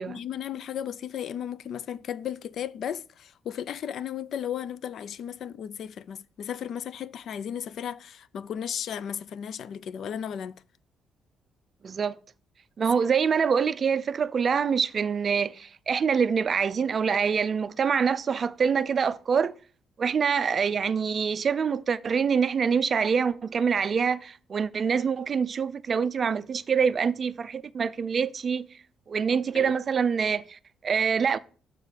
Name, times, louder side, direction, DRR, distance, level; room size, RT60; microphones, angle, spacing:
voice 1, 0.0-10.6 29.5-29.7, left 9 dB, 55° left, 0.3 m, -35 dB
voice 2, 11.8-12.2 12.8-19.5 20.0-28.7 29.1-31.4, right 6 dB, 35° right, 0.4 m, -25 dB
6.7 x 3.7 x 6.4 m
cardioid pair, 150°, 0 cm